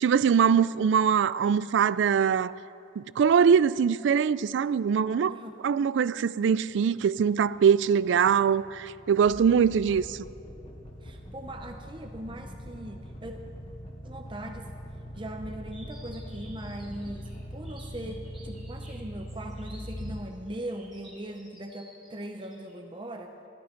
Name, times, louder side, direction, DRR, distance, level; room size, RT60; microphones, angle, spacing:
voice 1, 0.0-2.5 3.0-5.3 5.6-10.2, right 7 dB, 70° right, 0.3 m, -23 dB
sound 1, 6.9-20.2, equal, 75° left, 1.3 m, -42 dB
sound 2, 9.3-18.6, left 1 dB, 30° left, 1.2 m, -47 dB
voice 2, 11.0-13.4 14.0-14.7 15.2-23.3, right 1 dB, 25° right, 0.7 m, -40 dB
sound 3, 15.7-22.7, right 1 dB, ahead, 3.7 m, -54 dB
16.5 x 13.0 x 4.5 m
head